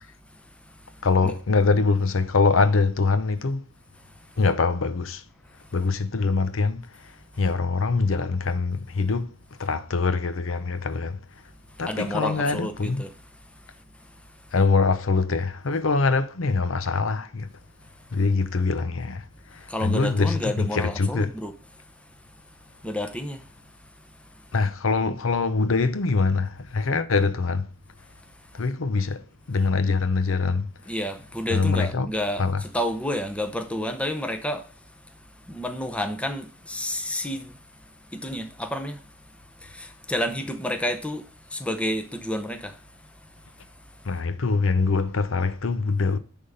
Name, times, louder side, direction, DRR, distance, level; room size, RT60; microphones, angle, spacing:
voice 1, 1.0-3.6 4.4-5.2 5.7-11.2 11.8-13.0 14.5-17.5 18.1-21.3 24.5-27.7 28.5-30.7 31.5-32.1 32.4-32.6 44.0-46.2, left 4 dB, 75° left, 0.7 m, -24 dB
voice 2, 11.9-13.1 19.7-21.5 22.8-23.4 30.9-34.6 35.5-37.5 38.1-39.0 39.7-41.2 41.5-42.7, left 1 dB, 5° left, 0.8 m, -30 dB
10.0 x 3.6 x 5.5 m
head